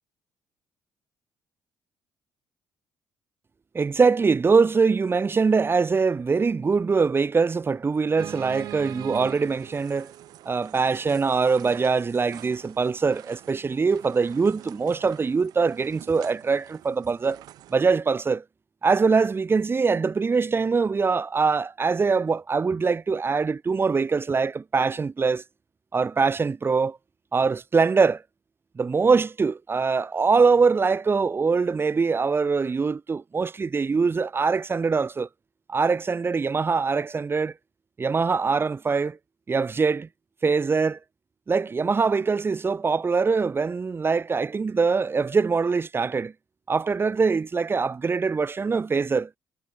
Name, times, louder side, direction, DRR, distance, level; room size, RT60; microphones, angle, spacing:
voice 1, 3.7-10.1 10.5-17.4 17.7-18.4 18.8-25.4 25.9-27.0 27.3-28.2 28.8-35.3 35.7-37.5 38.0-39.2 39.5-40.1 40.4-41.0 41.5-46.3 46.7-49.3, right 4 dB, 35° right, 2.5 m, -23 dB
sound 1, 8.2-17.8, right 13 dB, 75° right, 3.0 m, -44 dB
supercardioid pair, 65°, 7 cm